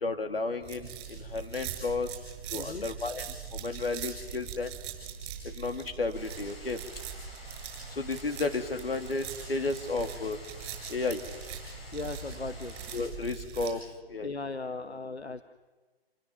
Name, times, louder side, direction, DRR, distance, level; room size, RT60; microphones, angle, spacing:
voice 1, 0.0-2.1 2.5-3.2 3.6-4.7 5.6-6.8 8.0-10.4 10.9-11.2 12.9-13.8 14.1-14.3, left 3 dB, 65° left, 6 dB, 3.0 m, -32 dB
sound 1, 0.6-13.7, right 8 dB, 20° right, 7.4 m, -42 dB
voice 2, 2.5-2.9 11.9-12.8 14.2-15.4, left 3 dB, 85° left, 10 dB, 1.3 m, -37 dB
sound 2, 6.1-13.1, left 2 dB, 25° left, 5.8 m, -50 dB
28.5 x 21.0 x 7.3 m, 1.3 s
figure-of-eight pair, 145°, 32 cm